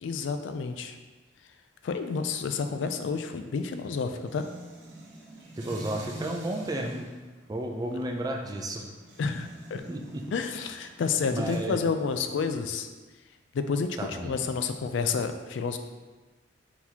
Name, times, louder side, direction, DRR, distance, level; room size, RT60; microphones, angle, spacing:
voice 1, 0.0-0.9 1.8-4.5 9.2-9.8 10.3-12.9 13.5-15.8, left 5 dB, 75° left, 8 dB, 0.3 m, -30 dB
sound 1, 1.8-11.6, right 1 dB, 70° right, 0.8 m, -46 dB
voice 2, 5.6-7.1 7.5-8.8 9.9-10.2 11.3-11.8 14.0-14.4, right 1 dB, 20° right, 2 dB, 0.4 m, -32 dB
4.5 x 3.9 x 2.8 m, 1.2 s
head